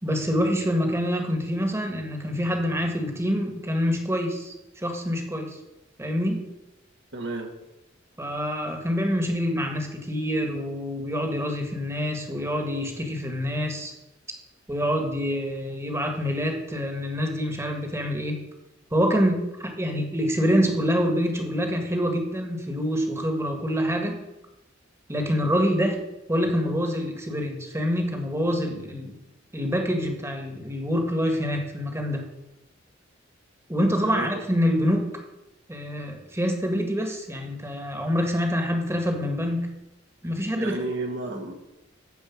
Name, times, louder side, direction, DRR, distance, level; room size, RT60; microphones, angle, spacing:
voice 1, 0.0-5.6 6.0-6.4 8.2-13.9 14.7-18.4 18.9-24.2 25.1-26.0 26.3-29.2 29.5-32.2 33.7-35.1 35.7-39.7 40.2-40.8 41.3-41.4, equal, 15° right, 3 dB, 1.8 m, -26 dB
voice 2, 7.1-7.5 34.0-34.3 40.5-41.5, right 2 dB, 65° right, 3 dB, 2.0 m, -31 dB
13.0 x 5.0 x 8.7 m, 0.93 s
head